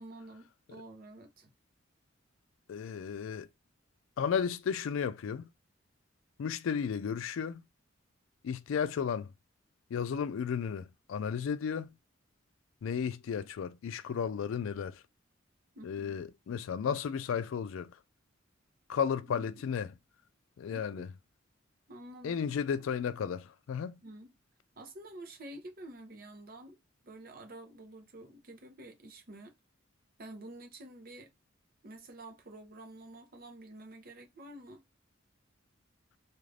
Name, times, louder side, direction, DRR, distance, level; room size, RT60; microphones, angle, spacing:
voice 1, 0.0-1.5 15.7-16.2 19.3-19.7 20.7-21.0 21.9-22.4 24.0-24.3 24.8-29.6 30.2-31.3 31.8-34.8, right 1 dB, 50° right, 0.7 m, -49 dB
voice 2, 2.7-3.5 4.2-5.5 6.4-7.6 8.4-9.3 9.9-11.9 12.8-15.0 15.8-17.9 18.9-19.9 20.6-21.1 22.2-24.0, left 7 dB, 80° left, 0.3 m, -33 dB
2.5 x 2.4 x 3.2 m
head